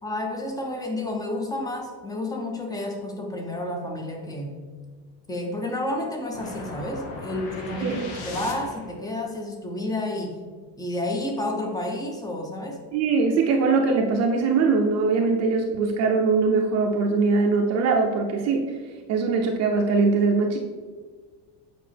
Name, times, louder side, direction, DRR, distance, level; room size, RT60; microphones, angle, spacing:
voice 1, 0.0-4.6 5.3-10.3 10.8-12.8, left 1 dB, 10° left, 2 dB, 0.6 m, -30 dB
sound 1, 6.3-9.0, left 3 dB, 85° left, 1.4 m, -37 dB
voice 2, 12.9-18.8 19.1-20.6, right 4 dB, 45° right, 1 dB, 0.6 m, -22 dB
7.6 x 4.8 x 3.4 m, 1.5 s
cardioid pair, 165°, 37 cm